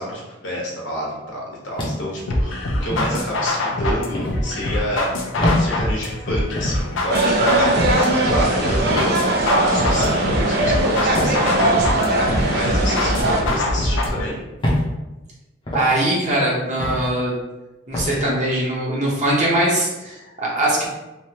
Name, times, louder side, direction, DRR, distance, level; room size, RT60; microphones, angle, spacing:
voice 1, 0.0-9.1 9.7-11.8 12.5-14.4, equal, 65° left, -4 dB, 1.0 m, -28 dB
sound 1, 1.8-2.2 2.9-3.2 4.1-4.4 5.4-5.6 6.6-6.8 7.8-8.0 8.9-9.1 9.9-10.2 11.1-11.4 12.3-12.5 13.4-13.6 14.6-14.9 15.7-15.9 16.8-17.1 17.9-18.1, left 1 dB, 25° left, 0.6 m, -24 dB
sound 2, 2.3-14.3, left 1 dB, 85° left, 0.5 m, -24 dB
sound 3, 7.1-13.4, right 2 dB, 55° right, 0.5 m, -20 dB
voice 2, 15.7-17.3 17.9-20.9, right 1 dB, 35° right, -6 dB, 0.9 m, -21 dB
3.1 x 2.5 x 2.8 m, 1.0 s
head